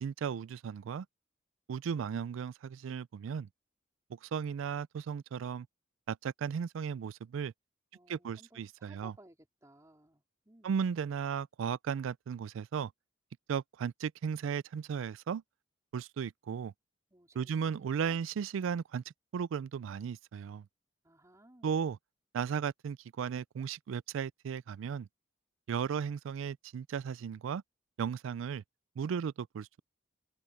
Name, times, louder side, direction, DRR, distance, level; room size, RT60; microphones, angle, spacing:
voice 1, 0.0-1.1 1.7-3.5 4.1-5.7 6.1-7.5 8.1-9.1 10.6-12.9 13.5-15.4 15.9-16.7 17.3-19.0 19.3-20.7 21.6-22.0 22.3-25.1 25.7-27.6 28.0-28.6 29.0-29.8, right 7 dB, 80° right, 0.3 m, -35 dB
voice 2, 7.9-10.7 17.1-18.2 21.0-21.9, right 1 dB, 15° right, 3.7 m, -60 dB
head